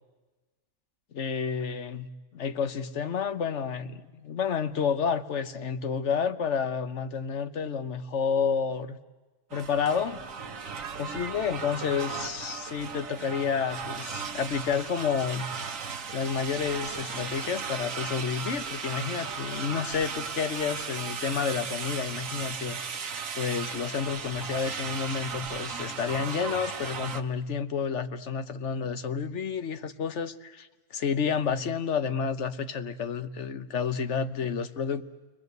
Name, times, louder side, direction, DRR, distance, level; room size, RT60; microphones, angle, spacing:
voice 1, 1.1-9.0 9.5-10.2 11.0-15.5 16.1-22.8 23.3-35.0, left 6 dB, 60° left, 11 dB, 1.3 m, -30 dB
sound 1, 9.5-27.2, right 6 dB, 80° right, 1.5 m, -36 dB
29.5 x 22.5 x 8.1 m, 1.2 s
omnidirectional pair, 1.4 m